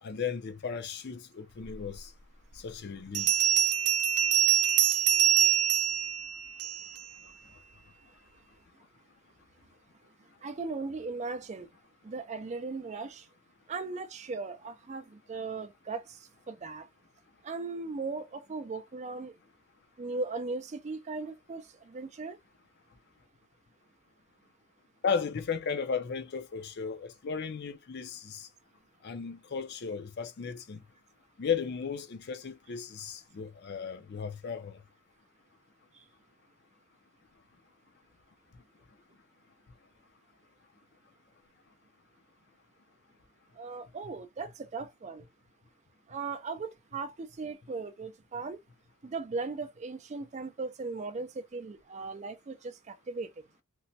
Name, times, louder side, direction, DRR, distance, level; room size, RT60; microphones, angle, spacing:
voice 1, 0.0-2.1 2.5-3.4 25.0-28.5 29.0-30.8 31.4-34.8, left 6 dB, 50° left, 0.5 m, -35 dB
Bell, 1.9-2.0 3.1-7.0, right 11 dB, 85° right, 0.7 m, -25 dB
voice 2, 10.4-11.7 12.0-13.3 13.7-16.2 16.5-16.9 17.4-19.3 20.0-22.4 43.6-45.2 46.1-48.6 49.0-53.3, right 4 dB, 30° right, 0.3 m, -38 dB
3.0 x 2.1 x 2.7 m
head